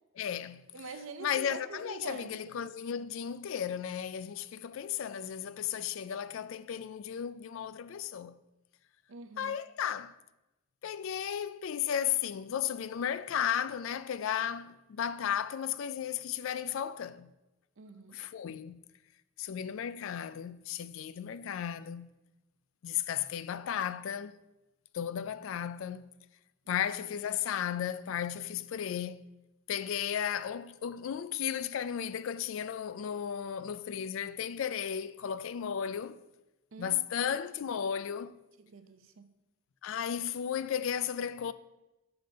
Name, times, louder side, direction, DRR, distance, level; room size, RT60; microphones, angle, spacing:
voice 1, 0.2-0.7 1.2-8.4 9.4-10.1 10.8-17.3 18.1-18.8 19.4-22.1 22.8-24.3 24.9-26.1 26.7-29.2 29.7-36.2 36.8-38.4 39.8-41.5, left 9 dB, 65° left, 0.3 m, -34 dB
voice 2, 0.7-2.3 9.1-9.6 17.8-18.2 26.7-26.8 36.7-37.3 38.7-39.2, right 4 dB, 65° right, 0.6 m, -45 dB
5.9 x 5.2 x 5.2 m
head